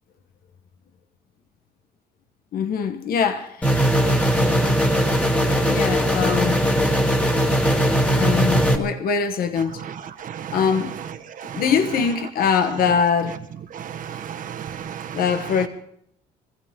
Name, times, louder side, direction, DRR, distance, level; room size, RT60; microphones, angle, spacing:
voice 1, 2.5-3.7 5.1-5.2 5.6-6.6 8.1-9.8 10.5-10.9 11.5-13.4 15.1-15.7, left 6 dB, 60° left, 1.4 m, -22 dB
sound 1, 3.6-8.8, equal, 10° left, 2.2 m, -19 dB
voice 2, 9.8-10.6 11.4-11.6 13.7-15.2, right 9 dB, 55° right, 1.6 m, -34 dB
24.0 x 15.5 x 3.7 m
cardioid pair, 110°, 17 cm